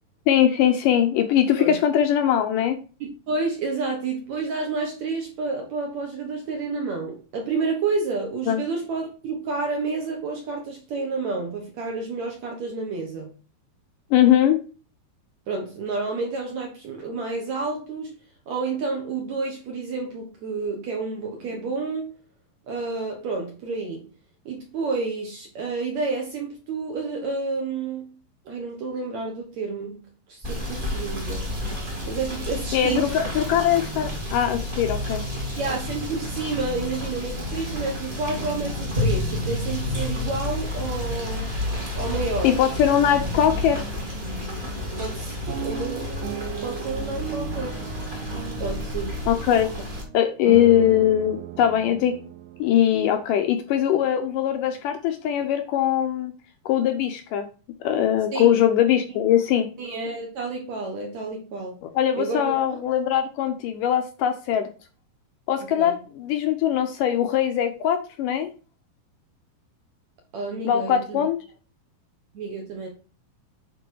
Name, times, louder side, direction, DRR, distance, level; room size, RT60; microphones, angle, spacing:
voice 1, 0.3-2.8 8.5-8.6 14.1-14.6 32.7-35.2 42.4-43.8 49.3-49.7 50.1-52.2 52.6-56.3 56.7-57.5 57.8-59.7 61.8-64.7 65.5-68.5 70.7-71.4, left 10 dB, 75° left, 2.0 m, -21 dB
voice 2, 3.0-13.3 15.5-18.1 18.5-22.1 22.7-24.1 24.5-28.1 28.5-31.5 32.1-33.1 35.6-41.5 41.9-42.6 45.0-45.4 45.6-46.1 46.6-47.8 48.6-49.2 58.3-58.6 59.8-61.8 62.2-62.6 65.6-66.0 70.3-71.2 72.3-72.9, right 4 dB, 60° right, 2.0 m, -30 dB
Rain / Motor vehicle (road), 30.4-50.0, left 1 dB, 30° right, 0.9 m, -30 dB
sound 1, 45.5-53.6 54.2-54.3 54.5-54.8, right 11 dB, 75° right, 2.3 m, -37 dB
9.0 x 4.3 x 4.7 m
omnidirectional pair, 4.4 m